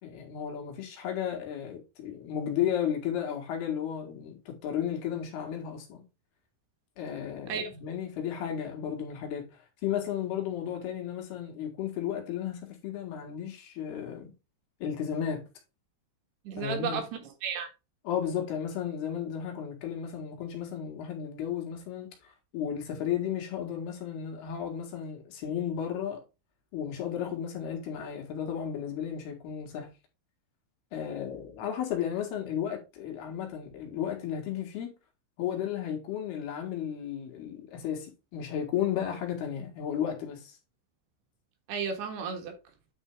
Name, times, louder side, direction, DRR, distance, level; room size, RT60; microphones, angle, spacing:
voice 1, 0.0-6.0 7.0-9.5 9.8-14.3 14.8-15.5 16.6-17.0 18.1-26.2 26.7-29.9 30.9-34.9 35.4-40.6, left 9 dB, 75° left, 3.7 m, -34 dB
voice 2, 16.5-17.7 41.7-42.6, right 6 dB, 75° right, 3.5 m, -33 dB
9.9 x 4.4 x 3.6 m
omnidirectional pair, 4.7 m